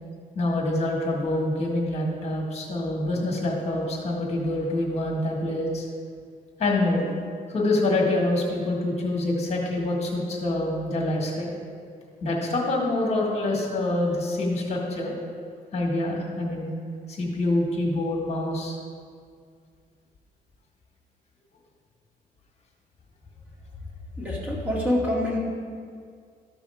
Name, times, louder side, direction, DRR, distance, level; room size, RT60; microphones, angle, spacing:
voice 1, 0.3-5.8 6.6-7.1 7.5-11.5 12.2-15.1 15.7-16.7 17.1-18.8, left 2 dB, 45° left, -1 dB, 1.7 m, -26 dB
voice 2, 24.2-25.4, left 1 dB, 10° right, -5 dB, 2.3 m, -26 dB
13.5 x 5.6 x 3.6 m, 2.1 s
cardioid pair, 130°, 16 cm